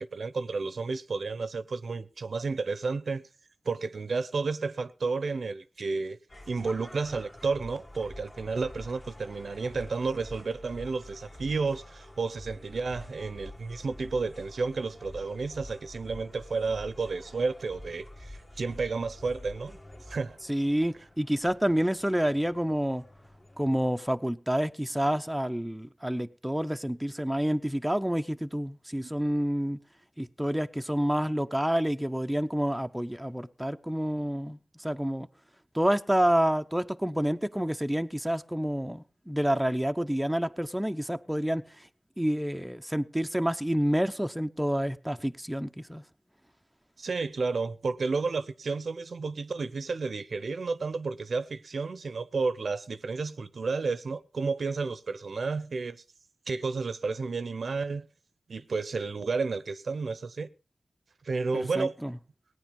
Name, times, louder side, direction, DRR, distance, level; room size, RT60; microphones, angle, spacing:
voice 1, 0.0-3.2 3.6-6.2 6.5-19.8 20.1-20.4 29.0-29.1 47.0-56.0 56.5-58.1 58.5-60.5 61.2-62.0, right 4 dB, 70° right, 0.7 m, -31 dB
sound 1, 6.3-23.9, left 1 dB, 35° left, 2.0 m, -48 dB
voice 2, 20.5-23.0 23.6-29.8 30.2-35.3 35.7-41.9 42.2-46.0 61.5-62.1, equal, 5° right, 0.7 m, -28 dB
17.5 x 9.4 x 5.3 m
wide cardioid pair, 75°, 0 cm